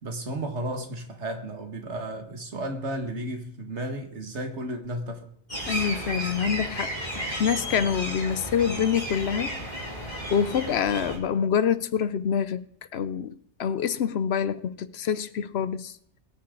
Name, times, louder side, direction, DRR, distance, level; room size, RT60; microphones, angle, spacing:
voice 1, 0.0-5.3, right 1 dB, 70° right, 2.0 m, -33 dB
sound 1, 5.5-11.2, right 1 dB, 35° left, 3.9 m, -33 dB
voice 2, 5.7-6.9 7.4-9.6 10.3-12.6 12.9-15.9, left 8 dB, 65° left, 0.8 m, -26 dB
22.0 x 8.7 x 3.8 m
omnidirectional pair, 1.2 m